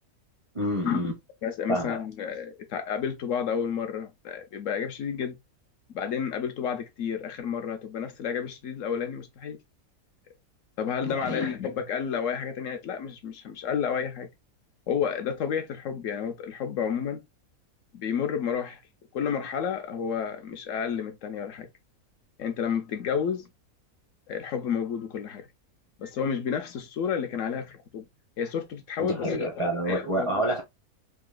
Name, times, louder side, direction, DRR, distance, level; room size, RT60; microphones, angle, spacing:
voice 1, 0.5-1.1 1.7-2.0 11.0-11.5 29.0-30.6, right 1 dB, 35° right, 0.5 m, -28 dB
voice 2, 1.4-5.4 5.9-9.6 10.8-14.3 14.9-17.2 17.9-18.8 19.1-21.7 22.4-23.5 24.3-25.5 26.0-28.0 28.4-29.5 29.9-30.4, left 7 dB, 65° left, 0.9 m, -30 dB
3.8 x 2.7 x 2.3 m
omnidirectional pair, 1.5 m